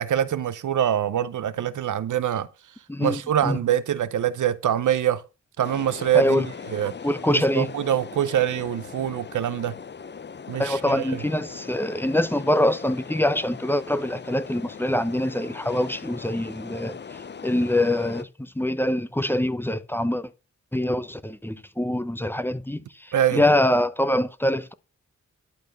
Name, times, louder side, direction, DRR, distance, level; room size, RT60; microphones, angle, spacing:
voice 1, 0.0-2.5 3.0-5.2 5.6-6.4 6.7-6.9 7.3-9.7 10.5-11.2 23.1-23.4, right 10 dB, 90° right, 0.8 m, -24 dB
voice 2, 2.9-3.6 6.1-6.5 7.0-7.7 10.6-17.0 17.4-20.3 20.7-24.7, left 1 dB, 5° left, 0.8 m, -24 dB
sound 1, 5.6-18.2, left 6 dB, 35° left, 0.6 m, -40 dB
11.5 x 4.3 x 6.6 m
cardioid pair, 70°, 29 cm